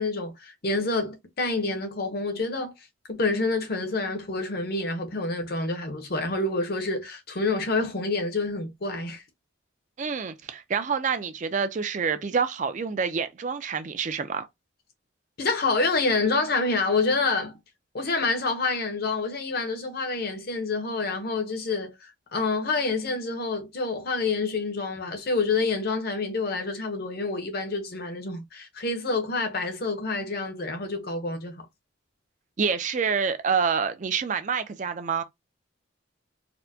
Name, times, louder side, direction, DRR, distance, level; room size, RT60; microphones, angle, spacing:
voice 1, 0.0-2.7 3.1-9.2 15.4-17.6 17.9-31.7, left 3 dB, 50° left, 0.8 m, -27 dB
voice 2, 10.0-14.5 32.6-35.2, right 6 dB, 35° right, 0.4 m, -27 dB
4.2 x 2.1 x 2.7 m
head